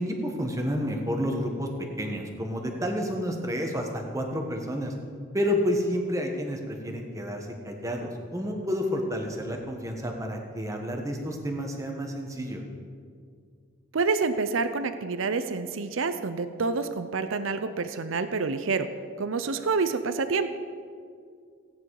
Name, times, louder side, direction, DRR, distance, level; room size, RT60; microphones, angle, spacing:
voice 1, 0.0-1.7 2.0-4.9 5.3-12.6, equal, 15° right, 2 dB, 1.3 m, -30 dB
voice 2, 13.9-18.9 19.2-20.5, right 4 dB, 75° right, 10 dB, 0.6 m, -28 dB
16.5 x 9.5 x 4.8 m, 2.1 s
head